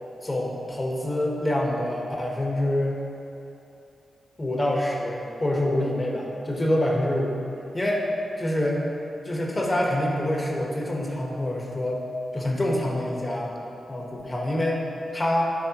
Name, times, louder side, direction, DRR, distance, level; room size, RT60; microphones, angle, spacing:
voice 1, 0.2-3.0 4.4-7.4 7.7-8.1 8.4-8.8 9.2-12.0 12.3-13.5 13.9-14.8 15.1-15.5, left 1 dB, 30° left, -2 dB, 1.2 m, -26 dB
10.0 x 3.5 x 3.0 m, 2.9 s
supercardioid pair, 45°, 0 cm